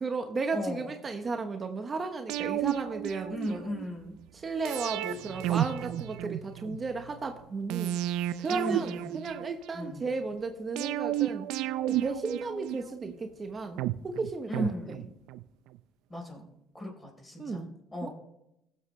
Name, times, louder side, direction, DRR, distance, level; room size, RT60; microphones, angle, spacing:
voice 1, 0.0-3.6 4.3-8.0 8.4-11.5 11.9-13.8 14.0-14.7 17.4-17.7 18.0-18.1, right 4 dB, 35° right, 6 dB, 1.0 m, -34 dB
voice 2, 0.5-1.0 3.3-4.1 8.5-9.3 9.7-10.1 14.5-15.1 16.1-16.5 16.7-18.1, left 1 dB, 20° left, 1 dB, 3.8 m, -36 dB
sound 1, 2.3-3.9 4.6-6.8 7.7-9.9 10.8-13.1 13.8-15.4 15.7-15.8, right 13 dB, 85° right, 0.4 m, -32 dB
sound 2, 5.0-7.6, right 10 dB, 85° left, 2.4 m, -49 dB
16.5 x 7.6 x 3.2 m, 0.84 s
cardioid pair, 95°, 0 cm